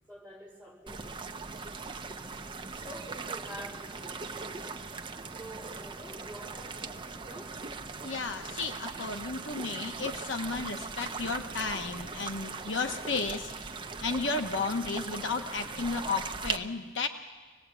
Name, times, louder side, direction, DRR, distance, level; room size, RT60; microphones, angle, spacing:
voice 1, 0.1-1.2 1.7-2.2 2.7-4.8 5.3-7.6, right 1 dB, 10° left, -3 dB, 5.4 m, -47 dB
sound 1, 0.9-16.6, right 4 dB, 25° right, 0.8 m, -40 dB
voice 2, 8.0-13.5 14.0-17.1, left 4 dB, 75° left, 5 dB, 1.1 m, -33 dB
25.0 x 19.0 x 8.2 m, 1.4 s
head